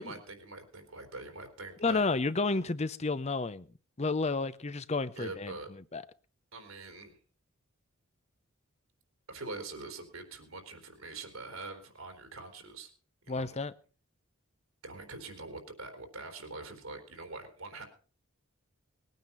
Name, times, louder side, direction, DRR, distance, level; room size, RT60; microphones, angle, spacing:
voice 1, 0.0-2.0 5.1-5.7 6.5-7.2 9.3-12.9 13.2-13.6 14.8-17.8, right 3 dB, 85° right, 3.7 m, -44 dB
voice 2, 1.8-3.7 4.0-5.5 5.9-6.0 13.3-13.7, left 3 dB, 30° left, 0.6 m, -31 dB
20.5 x 9.3 x 5.6 m
head